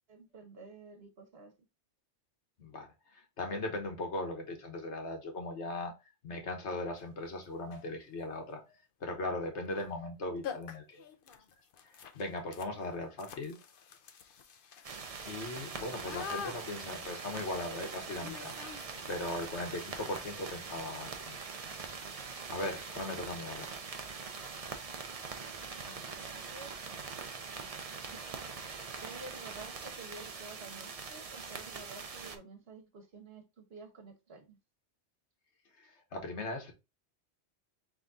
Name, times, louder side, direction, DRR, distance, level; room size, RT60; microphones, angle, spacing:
voice 1, 0.1-1.5 25.8-26.7 27.9-28.2 29.0-34.6, right 3 dB, 65° right, 5 dB, 1.3 m, -51 dB
voice 2, 2.6-5.9 6.2-11.0 11.9-13.6 15.3-18.5 19.1-21.4 22.0-23.7 35.8-36.7, left 2 dB, 90° left, 3 dB, 1.5 m, -39 dB
sound 1, 7.0-7.1 7.6-8.0 9.7-9.9 10.1-10.2 10.4-19.3, left 7 dB, 55° left, 0.8 m, -47 dB
sound 2, 14.8-32.4, right 5 dB, 40° right, 0.6 m, -43 dB
4.0 x 3.5 x 3.5 m, 0.25 s
omnidirectional pair, 1.1 m